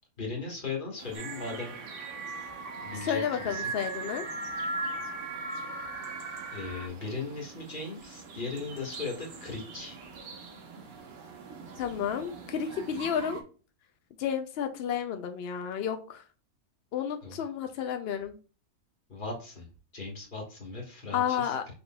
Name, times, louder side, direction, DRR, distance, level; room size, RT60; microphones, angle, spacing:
voice 1, 0.2-1.7 2.8-3.7 6.5-10.0 17.2-17.4 19.1-19.7 19.9-21.5, left 4 dB, 35° left, -1 dB, 1.6 m, -38 dB
sound 1, 1.0-13.4, right 4 dB, 70° right, 1.4 m, -47 dB
sound 2, 1.1-6.9, right 2 dB, 45° right, 1.0 m, -37 dB
voice 2, 3.0-4.2 11.8-13.4 14.2-16.2 16.9-18.4 21.1-21.6, left 8 dB, 75° left, 7 dB, 0.5 m, -31 dB
5.4 x 3.8 x 2.2 m, 0.37 s
omnidirectional pair, 1.6 m